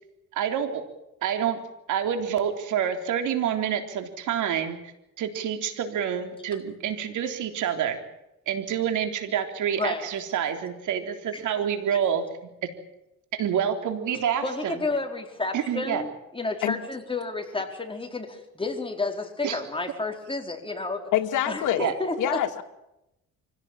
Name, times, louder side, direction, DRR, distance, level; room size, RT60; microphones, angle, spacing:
voice 1, 0.3-0.8 1.2-1.6 1.9-4.8 5.2-8.0 8.5-12.7 13.3-14.8 15.5-16.0 19.4-19.6 21.8-21.9, right 8 dB, 80° right, 6 dB, 3.8 m, -27 dB
voice 2, 9.8-10.1 14.4-16.1 16.3-21.1 21.5-22.4, left 3 dB, 15° left, 3 dB, 4.7 m, -31 dB
voice 3, 21.1-21.9 22.2-22.6, left 12 dB, 85° left, 5 dB, 2.4 m, -25 dB
25.0 x 17.0 x 9.0 m, 0.89 s
cardioid pair, 90°, 30 cm